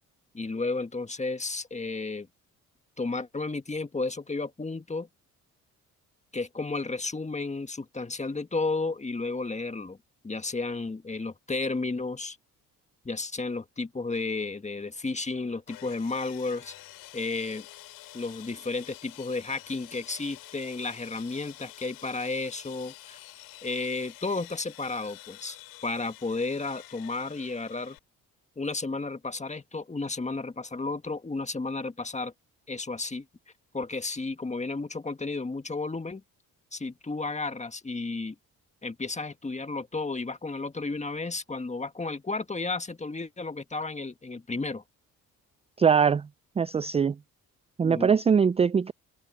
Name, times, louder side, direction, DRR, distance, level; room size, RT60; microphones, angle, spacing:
voice 1, 0.3-2.3 3.0-5.1 6.3-10.0 10.2-12.4 13.0-16.7 17.1-17.7 18.1-23.2 23.6-25.6 25.8-28.0 28.6-32.3 32.7-33.2 33.7-36.2 36.7-38.3 38.8-44.8 47.8-48.1, left 3 dB, 20° left, 1.6 m, -32 dB
Sawing, 15.7-28.0, left 16 dB, 80° left, 6.0 m, -48 dB
voice 2, 45.8-46.3 46.6-47.2 47.8-48.9, right 6 dB, 20° right, 0.3 m, -22 dB
supercardioid pair, 65°, 36 cm